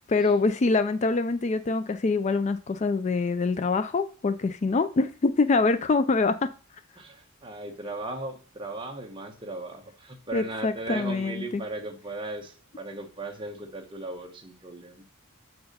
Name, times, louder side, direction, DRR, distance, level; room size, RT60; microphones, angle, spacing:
voice 1, 0.1-6.5 10.3-11.6, left 3 dB, 35° left, 11 dB, 0.4 m, -25 dB
voice 2, 7.0-15.0, right 2 dB, 25° right, 3 dB, 1.2 m, -37 dB
6.5 x 4.7 x 6.6 m, 0.39 s
head